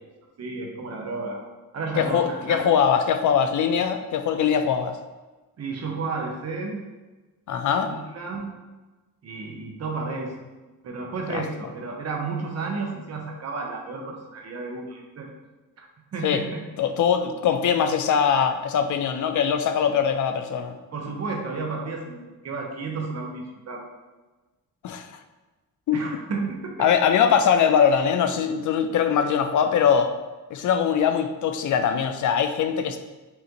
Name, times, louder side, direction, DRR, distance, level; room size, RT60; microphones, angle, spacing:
voice 1, 0.4-1.4 1.7-2.6 5.6-6.8 7.9-8.5 9.2-10.3 10.8-15.3 15.8-16.6 20.9-23.9 25.9-26.9, right 4 dB, 45° right, 1 dB, 0.9 m, -32 dB
voice 2, 2.0-5.0 7.5-8.0 11.3-11.4 16.2-16.4 16.8-20.8 24.8-25.2 25.9-26.0 26.8-30.1 30.5-33.0, left 7 dB, 60° left, 8 dB, 0.5 m, -22 dB
5.6 x 2.5 x 2.9 m, 1.2 s
cardioid pair, 105°, 35 cm